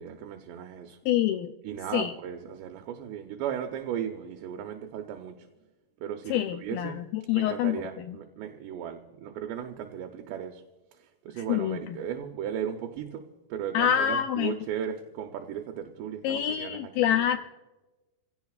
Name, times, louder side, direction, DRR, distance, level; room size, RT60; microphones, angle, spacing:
voice 1, 0.0-1.0 1.6-5.5 6.0-7.0 7.3-10.6 10.9-13.2 13.5-17.4, right 9 dB, 85° right, 4 dB, 3.1 m, -36 dB
voice 2, 1.1-1.5 1.9-2.1 6.3-8.2 11.5-12.0 13.7-14.5 16.2-17.4, left 10 dB, 90° left, 6 dB, 2.0 m, -26 dB
29.0 x 16.5 x 2.4 m, 1.1 s
omnidirectional pair, 4.8 m